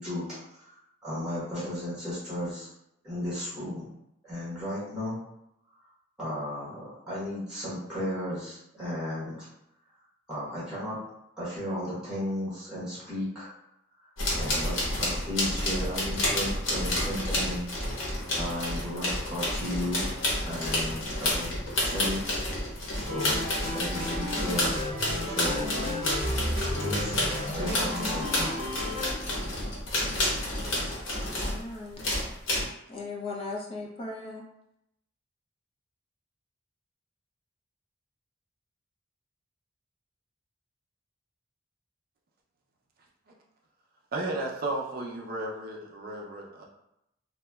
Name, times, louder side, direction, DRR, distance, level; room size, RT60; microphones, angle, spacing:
voice 1, 0.0-2.7 3.0-3.8 4.2-5.1 6.2-9.5 10.3-11.0 11.4-13.5 14.4-17.7 18.4-20.1 20.4-21.5 21.8-23.4 23.7-24.7 25.2-25.9 26.8-28.6, left 1 dB, 5° right, -10 dB, 1.0 m, -34 dB
sound 1, 14.2-31.6 32.0-32.6, left 1 dB, 90° left, 0.8 m, -30 dB
sound 2, 23.1-29.1, left 1 dB, 30° right, 0.8 m, -33 dB
voice 2, 31.1-32.1 32.9-34.4, left 3 dB, 30° left, -2 dB, 0.5 m, -38 dB
voice 3, 44.1-46.6, right 2 dB, 50° right, -1 dB, 0.5 m, -34 dB
2.8 x 2.2 x 2.2 m, 0.80 s
head